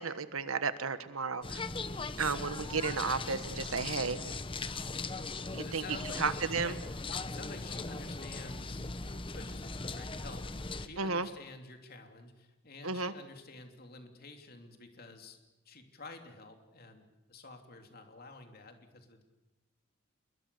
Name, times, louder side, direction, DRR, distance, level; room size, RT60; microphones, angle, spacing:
voice 1, 0.0-1.6 2.2-4.2 5.5-5.8 6.2-6.8 11.0-11.3 12.8-13.1, right 4 dB, 85° right, 12 dB, 1.3 m, -33 dB
sound 1, 1.4-10.9, left 3 dB, 25° left, 1.0 m, -39 dB
voice 2, 5.4-8.9 9.2-15.4 15.6-19.2, left 3 dB, 45° left, 5 dB, 3.0 m, -50 dB
27.0 x 22.5 x 7.0 m, 1.0 s
head